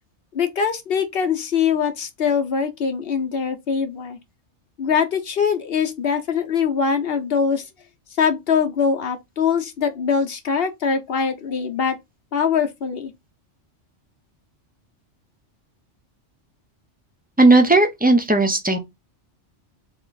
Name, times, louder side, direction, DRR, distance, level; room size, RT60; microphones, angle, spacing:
voice 1, 0.3-4.2 4.8-7.6 8.2-12.0 12.3-13.1, left 6 dB, 55° left, 1.1 m, -22 dB
voice 2, 17.4-18.8, right 2 dB, 10° right, 0.7 m, -15 dB
4.0 x 3.1 x 4.0 m
omnidirectional pair, 1.2 m